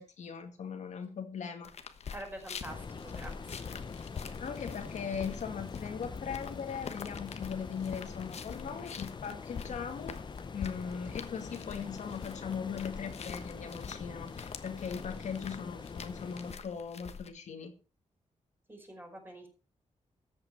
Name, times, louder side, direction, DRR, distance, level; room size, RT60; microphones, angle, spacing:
voice 1, 0.0-1.7 4.4-10.2 10.5-17.7, left 6 dB, 80° left, 5 dB, 2.0 m, -39 dB
sound 1, 1.6-17.3, left 6 dB, 65° left, 1.2 m, -46 dB
voice 2, 2.1-3.7 4.3-4.4 18.7-19.5, right 1 dB, 20° right, 1 dB, 5.0 m, -46 dB
sound 2, 2.6-16.5, left 5 dB, 40° left, 0.8 m, -44 dB
14.0 x 8.2 x 4.7 m, 0.34 s
wide cardioid pair, 120°, 12 cm